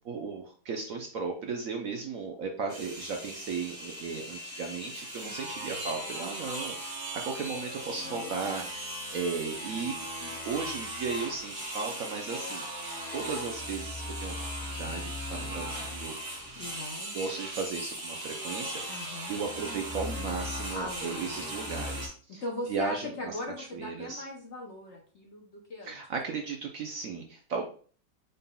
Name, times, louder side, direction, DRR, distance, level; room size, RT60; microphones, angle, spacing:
voice 1, 0.0-10.0 10.2-12.6 13.1-16.2 17.1-22.4 22.7-24.2 25.8-27.6, right 5 dB, 65° right, 2 dB, 0.9 m, -36 dB
sound 1, 2.7-22.1, equal, 35° right, 1.7 m, -38 dB
voice 2, 8.0-8.4 16.5-17.1 18.9-19.4 20.7-21.5 22.3-26.0, left 1 dB, 55° left, 0 dB, 0.8 m, -39 dB
5.3 x 4.0 x 2.2 m, 0.43 s
omnidirectional pair, 1.9 m